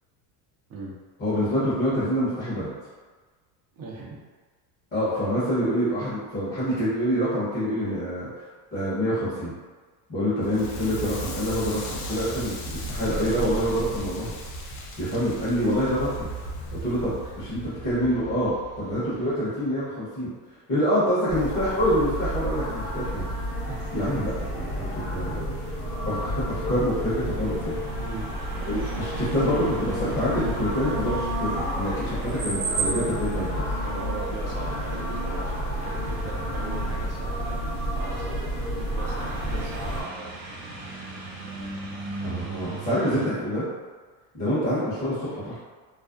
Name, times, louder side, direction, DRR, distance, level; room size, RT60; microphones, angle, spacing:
voice 1, 1.2-2.7 4.9-9.5 10.1-14.3 15.0-16.3 16.8-20.3 20.7-23.3 23.9-25.5 26.1-27.8 28.7-33.7 42.2-43.6 44.3-45.6, equal, 25° left, -12 dB, 0.8 m, -26 dB
voice 2, 3.7-4.2 23.7-23.8 28.0-28.3 33.8-38.3 38.8-40.3, right 3 dB, 35° right, -3 dB, 0.5 m, -39 dB
Crackle, 10.4-19.4, right 1 dB, 80° left, 0.7 m, -36 dB
sound 1, 21.3-40.0, equal, 55° left, 0.9 m, -31 dB
sound 2, 23.5-43.3, right 3 dB, 70° right, 0.9 m, -38 dB
2.4 x 2.0 x 2.5 m, 1.4 s
supercardioid pair, 120°, 47 cm